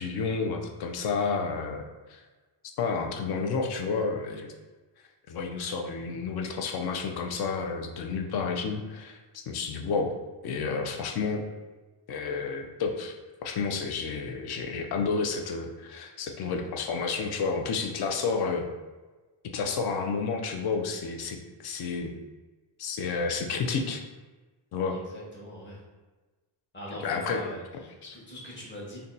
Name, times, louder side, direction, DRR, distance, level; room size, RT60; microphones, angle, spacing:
voice 1, 0.0-1.8 2.1-2.2 2.8-4.5 5.3-10.1 10.4-11.4 12.1-18.7 19.5-22.1 22.8-24.0 24.7-25.0 27.0-27.4 28.0-28.1, left 5 dB, 60° left, 3 dB, 0.5 m, -30 dB
voice 2, 24.9-25.8 26.7-29.0, equal, 25° left, -5 dB, 1.0 m, -41 dB
2.7 x 2.2 x 3.8 m, 1.2 s
cardioid pair, 140°, 45 cm